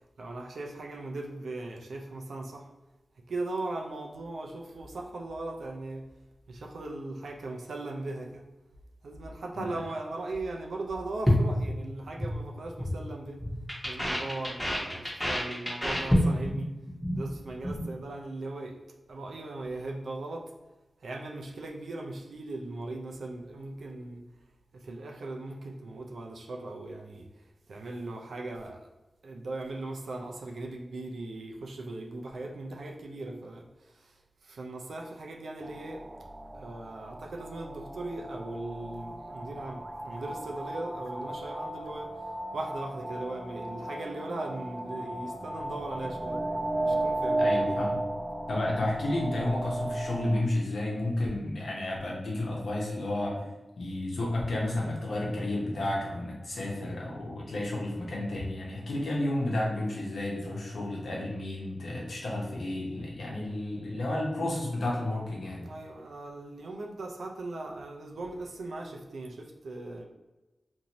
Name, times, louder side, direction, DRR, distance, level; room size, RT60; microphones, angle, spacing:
voice 1, 0.2-2.7 3.3-6.1 6.5-8.5 9.0-13.4 13.9-16.7 17.1-18.8 19.1-20.5 21.0-24.2 24.7-27.3 27.7-28.9 29.2-36.0 36.5-42.1 42.5-46.4 46.8-47.6 65.6-70.0, right 2 dB, 90° right, 1 dB, 0.4 m, -38 dB
sound 1, 11.3-12.4 12.6-13.0 13.2-16.6 16.9-17.2 17.5-17.8, equal, 10° left, 1.0 m, -28 dB
sound 2, 35.6-50.4, right 1 dB, 20° right, 0.3 m, -35 dB
voice 2, 47.4-48.0 48.5-53.4 53.8-65.6, left 1 dB, 80° left, -3 dB, 0.9 m, -31 dB
2.6 x 2.6 x 2.9 m, 1.1 s
cardioid pair, 55°, 0 cm